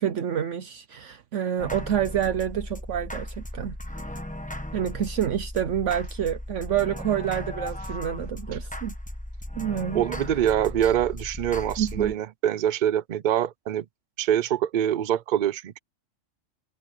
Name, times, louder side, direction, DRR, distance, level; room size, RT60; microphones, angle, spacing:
voice 1, 0.0-3.7 4.7-8.9 9.6-10.0 11.8-12.1, right 9 dB, 70° right, 1.1 m, -28 dB
sound 1, 1.6-12.2, left 1 dB, 5° left, 1.0 m, -36 dB
voice 2, 9.9-13.8 14.2-15.8, right 10 dB, 55° right, 0.6 m, -24 dB
omnidirectional pair, 1.4 m